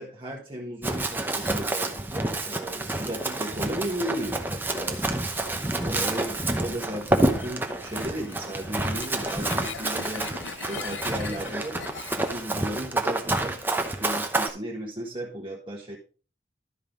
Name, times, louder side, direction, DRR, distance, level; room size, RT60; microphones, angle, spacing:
voice 1, 0.0-11.8 12.2-16.0, right 1 dB, 25° right, -2 dB, 1.4 m, -35 dB
Run, 0.8-14.5, right 2 dB, 10° right, 0.8 m, -28 dB
sound 1, 2.9-12.8, left 6 dB, 85° left, 0.7 m, -43 dB
12.5 x 5.4 x 3.8 m, 0.35 s
head